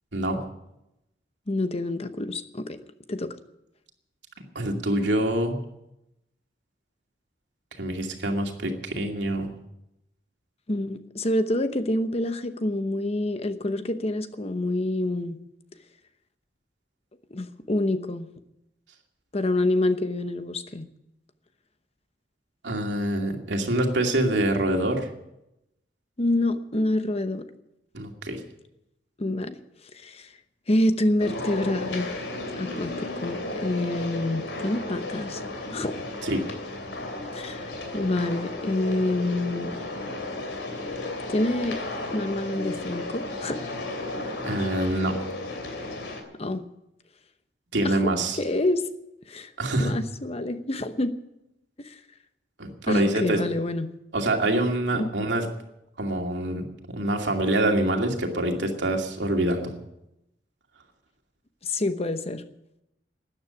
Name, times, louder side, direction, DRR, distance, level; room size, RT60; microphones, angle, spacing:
voice 1, 0.1-0.4 4.5-5.6 7.8-9.5 22.6-25.1 27.9-28.4 36.2-36.4 44.4-45.2 47.7-48.4 49.6-49.9 52.6-53.4 54.1-55.4 56.0-59.7, right 1 dB, 80° right, 2 dB, 2.5 m, -25 dB
voice 2, 1.5-2.8 3.1-3.3 10.7-15.4 17.3-18.3 19.3-20.9 26.2-27.5 29.2-29.6 29.9-30.3 30.7-32.1 32.6-35.4 35.7-36.0 37.3-39.8 41.3-41.8 42.1-43.7 46.3-46.6 47.8-48.9 49.3-51.1 51.8-52.0 52.9-53.9 54.9-55.1 61.6-62.4, left 1 dB, 35° left, 10 dB, 0.9 m, -27 dB
sound 1, 31.2-46.2, left 2 dB, 90° left, 2.9 m, -34 dB
13.0 x 9.8 x 9.7 m, 0.87 s
head